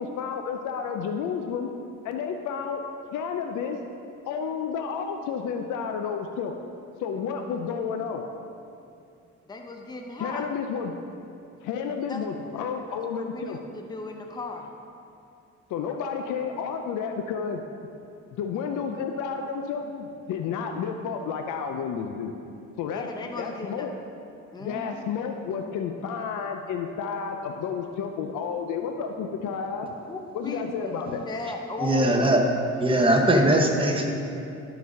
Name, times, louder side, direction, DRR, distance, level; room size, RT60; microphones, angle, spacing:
voice 1, 0.0-1.7 2.0-2.8 3.1-3.8 4.3-6.7 7.0-8.3 10.2-10.9 11.6-13.6 15.7-17.6 18.3-22.3 22.8-23.1 23.4-23.9 24.6-29.9 30.3-31.2, left 6 dB, 80° left, 4 dB, 0.6 m, -31 dB
voice 2, 7.2-7.7 8.0-8.1 9.5-10.5 12.1-12.2 12.9-14.7 22.9-23.9 24.5-25.1 30.1-32.2, left 2 dB, 15° left, 2 dB, 0.7 m, -37 dB
voice 3, 31.8-32.4 32.7-34.1, right 1 dB, 15° right, 1 dB, 1.0 m, -20 dB
11.0 x 4.1 x 5.3 m, 2.6 s
cardioid pair, 90°, 30 cm